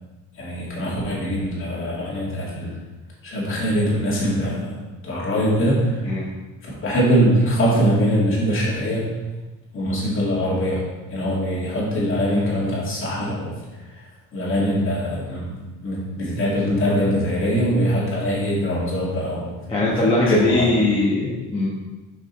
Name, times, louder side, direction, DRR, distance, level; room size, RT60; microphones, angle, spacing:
voice 1, 0.4-2.7 3.2-4.8 5.0-5.8 6.7-9.0 9.7-10.8 11.1-13.5 14.3-19.5 20.2-20.6, equal, 35° left, -6 dB, 2.5 m, -22 dB
voice 2, 19.7-21.7, left 2 dB, 15° left, -8 dB, 1.2 m, -20 dB
6.2 x 5.3 x 4.1 m, 1.1 s
cardioid pair, 150°, 34 cm